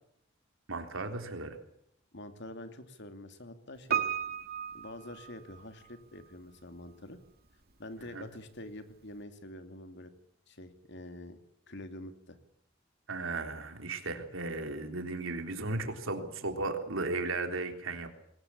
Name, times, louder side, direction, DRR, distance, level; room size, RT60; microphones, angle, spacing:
voice 1, 0.7-1.6 8.1-8.3 13.1-18.1, right 3 dB, 75° right, 5 dB, 3.6 m, -35 dB
voice 2, 2.1-4.0 4.7-7.2 7.8-10.1 10.5-11.4 11.7-12.4, left 1 dB, 60° left, 8 dB, 2.8 m, -46 dB
Piano, 3.9-6.0 6.2-6.3, right 8 dB, 50° right, 2.1 m, -34 dB
22.5 x 19.0 x 8.6 m, 0.73 s
head